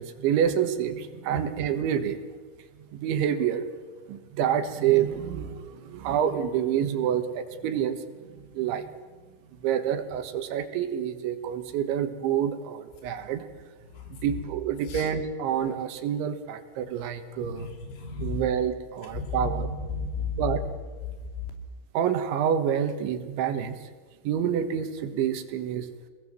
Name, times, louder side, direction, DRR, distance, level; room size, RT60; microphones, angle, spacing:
voice 1, 0.0-2.2 2.9-3.6 4.1-8.0 8.6-8.9 9.6-13.4 14.1-17.7 18.2-19.7 20.4-20.6 22.0-23.8 24.3-25.9, right 9 dB, 75° right, 8 dB, 3.7 m, -27 dB
voice 2, 17.4-18.4 19.1-20.4, left 3 dB, 75° left, 5 dB, 5.2 m, -33 dB
26.0 x 20.0 x 7.6 m, 1.4 s
omnidirectional pair, 5.5 m